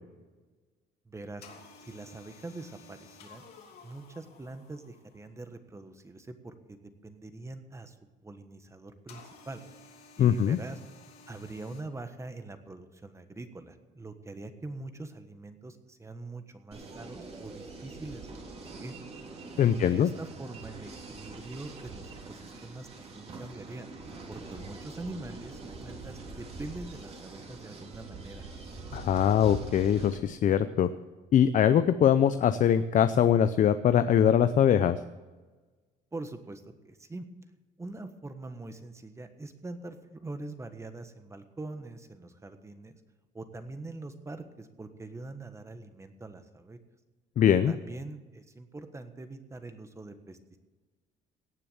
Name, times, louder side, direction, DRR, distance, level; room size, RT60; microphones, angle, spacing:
voice 1, 1.0-1.5 1.8-3.4 3.8-6.8 7.0-7.9 8.2-9.6 10.2-10.8 11.3-18.9 19.5-23.9 24.3-28.4 36.1-37.2 37.8-43.0 43.3-46.8 47.7-50.6, right 2 dB, 15° right, 8 dB, 1.4 m, -43 dB
sound 1, 1.4-5.3 9.1-11.8, left 4 dB, 70° left, 3.1 m, -53 dB
voice 2, 10.2-10.6 19.6-20.1 28.9-30.9 31.3-35.0 47.4-47.7, left 9 dB, 50° left, 11 dB, 0.6 m, -22 dB
sound 2, 16.7-30.2, right 3 dB, 35° right, 2.7 m, -44 dB
17.5 x 6.9 x 7.2 m, 1.3 s
cardioid pair, 110°, 17 cm